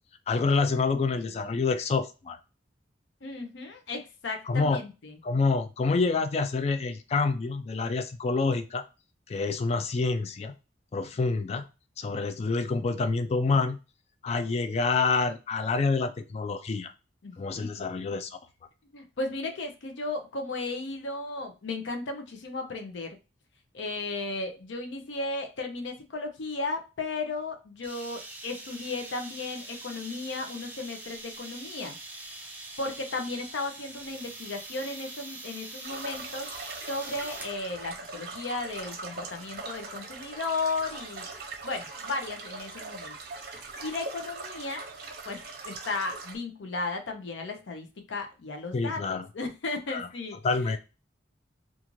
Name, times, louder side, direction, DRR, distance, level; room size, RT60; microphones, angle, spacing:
voice 1, 0.3-2.4 4.5-4.8 5.2-8.8 9.3-10.5 10.9-11.7 12.0-13.8 14.2-16.9 17.4-18.4 48.7-49.2 49.9-50.1 50.4-50.8, left 4 dB, 35° left, 9 dB, 0.3 m, -27 dB
voice 2, 3.2-5.2 17.2-17.9 18.9-23.2 23.7-32.0 32.3-32.5 32.8-36.5 36.9-41.2 41.6-43.2 43.4-44.9 45.2-50.4 50.7-50.8, left 3 dB, 85° left, 5 dB, 0.5 m, -35 dB
sound 1, 27.8-37.6, right 2 dB, 10° right, 0.7 m, -43 dB
sound 2, 35.8-46.4, right 3 dB, 55° right, 0.6 m, -41 dB
2.5 x 2.4 x 3.0 m, 0.30 s
head